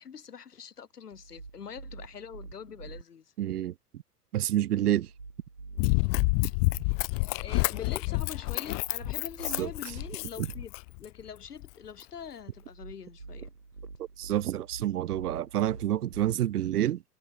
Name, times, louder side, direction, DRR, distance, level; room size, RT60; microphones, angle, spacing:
voice 1, 0.0-3.3 7.4-13.5, left 7 dB, 75° left, 2.0 m, -44 dB
sound 1, 1.1-3.0 4.9-6.8 8.7-10.6 12.5-16.3, right 4 dB, 90° right, 1.7 m, -46 dB
voice 2, 3.4-3.7 4.3-5.1 9.6-9.7 10.4-10.5 14.2-17.0, right 12 dB, 70° right, 0.6 m, -28 dB
Run, 5.8-11.0 11.6-11.7, left 34 dB, 25° left, 0.5 m, -28 dB
figure-of-eight pair, 100°, 47 cm